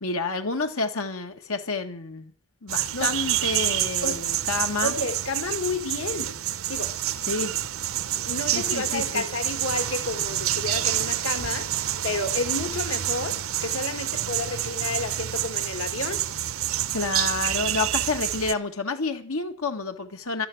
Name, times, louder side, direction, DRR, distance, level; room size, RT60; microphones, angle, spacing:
voice 1, 0.0-2.3 2.6-4.9 7.3-7.5 8.5-9.2 16.9-20.5, left 3 dB, 90° left, 1.8 m, -29 dB
sound 1, 2.7-18.5, right 12 dB, 80° right, 0.8 m, -28 dB
voice 2, 4.8-6.4 6.7-7.0 8.2-16.2, left 3 dB, 75° left, 1.8 m, -31 dB
12.5 x 12.0 x 7.9 m
head